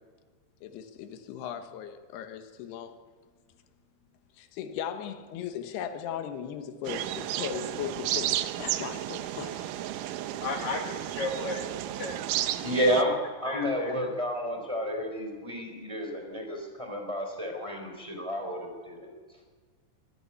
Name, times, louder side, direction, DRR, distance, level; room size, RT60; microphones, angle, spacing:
voice 1, 0.6-3.0 4.4-9.6, left 8 dB, 75° left, 7 dB, 3.2 m, -37 dB
sound 1, 6.8-13.0, right 13 dB, 90° right, 1.8 m, -33 dB
voice 2, 10.4-11.7 11.9-12.2 13.4-13.9, left 3 dB, 55° left, 4 dB, 2.5 m, -34 dB
voice 3, 12.6-13.1 13.4-19.1, equal, 10° right, 2 dB, 3.1 m, -30 dB
24.0 x 12.5 x 9.9 m, 1.5 s
omnidirectional pair, 4.9 m